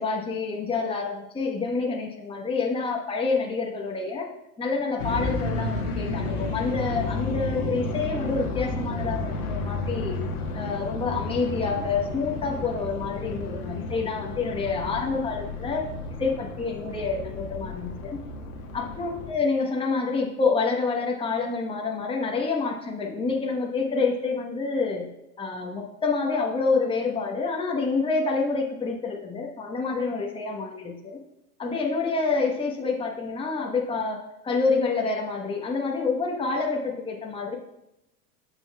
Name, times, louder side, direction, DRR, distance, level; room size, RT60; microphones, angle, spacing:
voice 1, 0.0-4.3 4.6-10.2 10.5-15.8 16.2-18.2 18.7-25.1 25.4-31.2 31.6-37.6, left 4 dB, 10° left, -1 dB, 1.2 m, -27 dB
sound 1, 5.0-19.3, left 2 dB, 90° left, 1.5 m, -32 dB
14.0 x 5.4 x 2.4 m, 0.88 s
hypercardioid pair, 100°, 44 cm